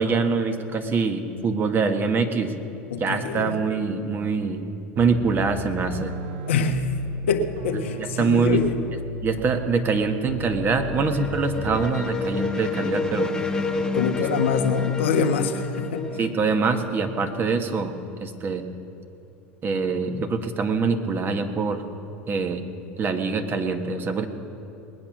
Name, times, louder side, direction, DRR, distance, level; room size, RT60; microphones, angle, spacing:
voice 1, 0.0-2.5 3.0-4.6 5.0-6.2 8.2-8.6 9.2-13.4 16.2-18.0 18.2-18.6 19.6-21.8 22.3-22.6 23.0-24.3, right 4 dB, 35° right, 6 dB, 1.5 m, -24 dB
voice 2, 2.9-3.6 6.5-8.8 13.9-16.2, left 5 dB, 80° left, 5 dB, 1.2 m, -25 dB
sound 1, 5.0-12.1, right 3 dB, 75° right, 0.9 m, -36 dB
sound 2, 10.2-17.6, left 3 dB, 10° left, 1.4 m, -30 dB
20.5 x 8.7 x 6.1 m, 2.8 s
hypercardioid pair, 85°, 6 cm